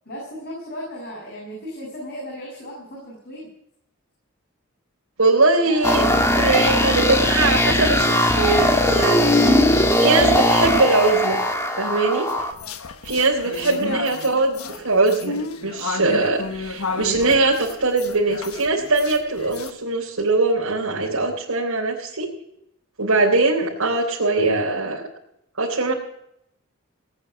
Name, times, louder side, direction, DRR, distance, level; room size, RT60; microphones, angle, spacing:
voice 1, 0.1-3.5 5.6-6.2 6.6-7.2 13.8-14.1, equal, 50° left, -3 dB, 6.8 m, -36 dB
voice 2, 5.2-6.0 6.4-11.4 11.8-12.3 13.0-22.3 23.0-25.0 25.6-25.9, right 3 dB, 90° right, -4 dB, 3.5 m, -21 dB
sound 1, 5.8-12.5, left 1 dB, 15° left, 1.7 m, -19 dB
sound 2, 12.3-19.7, left 4 dB, 85° left, 1.3 m, -32 dB
18.0 x 9.4 x 7.1 m, 0.77 s
head